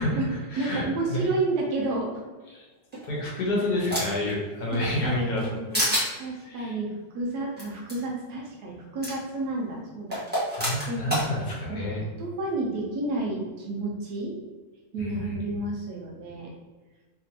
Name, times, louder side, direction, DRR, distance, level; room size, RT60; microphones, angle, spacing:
voice 1, 0.0-1.3 2.5-2.7 3.1-5.4 6.4-6.8 10.6-12.0 15.0-15.7, left 1 dB, 65° left, -3 dB, 1.3 m, -29 dB
voice 2, 0.6-2.2 4.7-5.8 6.2-10.2 10.9-11.8 12.2-14.3 14.9-16.5, right 2 dB, 65° right, -2 dB, 1.1 m, -31 dB
sound 1, 2.9-4.3 4.7-5.5 5.7-6.1 7.6-7.7 7.9-8.0 9.0-9.1 10.1-11.3, equal, 10° right, 0.8 m, -27 dB
3.3 x 2.9 x 2.7 m, 1.3 s
omnidirectional pair, 2.0 m